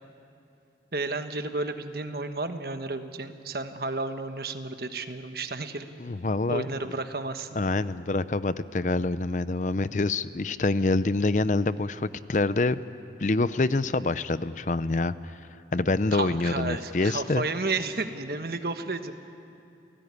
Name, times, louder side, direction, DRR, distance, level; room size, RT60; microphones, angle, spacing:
voice 1, 0.9-5.9 6.5-7.5 16.1-19.1, right 3 dB, 60° right, 8 dB, 1.3 m, -32 dB
voice 2, 6.0-6.7 7.6-12.8 13.2-15.1 15.7-17.4, left 3 dB, 45° left, 15 dB, 0.5 m, -26 dB
29.5 x 17.0 x 9.7 m, 2.7 s
head